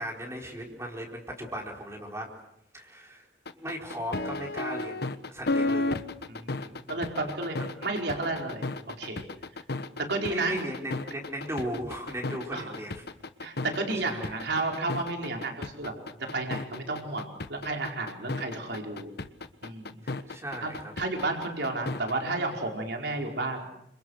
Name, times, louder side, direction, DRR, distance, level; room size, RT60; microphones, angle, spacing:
voice 1, 0.0-2.3 2.7-3.3 3.5-5.9 6.6-6.8 10.2-12.9 14.0-14.3 20.0-20.9, equal, 15° right, 0 dB, 4.5 m, -37 dB
sound 1, 3.5-22.1, left 2 dB, 60° left, 1.3 m, -33 dB
voice 2, 6.3-9.2 10.1-10.6 12.5-12.7 13.4-15.9 16.2-19.1 19.6-20.0 20.6-23.7, right 2 dB, 65° right, 2 dB, 4.8 m, -32 dB
29.5 x 26.5 x 6.5 m, 0.77 s
head